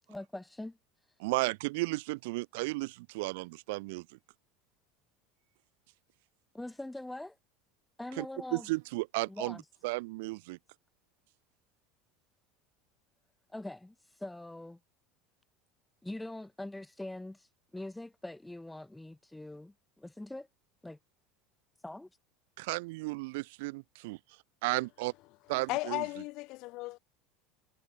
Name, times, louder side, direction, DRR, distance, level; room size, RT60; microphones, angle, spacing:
voice 1, 0.1-0.8 6.5-7.4 8.0-8.7 9.3-9.6 13.5-14.8 16.0-20.5 20.8-21.0 21.8-22.1, left 1 dB, 5° left, 5.8 m, -43 dB
voice 2, 1.2-4.0 8.2-8.3 8.5-9.6 9.8-10.6 22.6-24.2 24.6-25.1 25.5-26.0, right 24 dB, 75° right, 4.8 m, -34 dB
voice 3, 25.7-27.0, left 21 dB, 60° left, 5.3 m, -35 dB
supercardioid pair, 105°, 0 cm